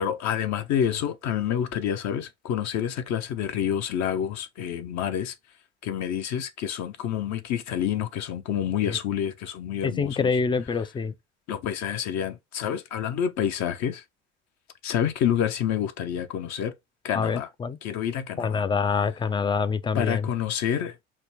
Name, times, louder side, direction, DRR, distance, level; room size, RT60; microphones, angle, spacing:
voice 1, 0.0-5.3 5.8-10.4 11.5-14.0 14.8-16.7 17.0-17.5 17.8-18.6 19.9-20.9, left 9 dB, 50° left, 0.7 m, -28 dB
voice 2, 9.8-11.1 17.1-17.8 18.4-20.3, left 5 dB, 15° left, 0.3 m, -26 dB
5.1 x 2.1 x 3.3 m
hypercardioid pair, 65°, 34 cm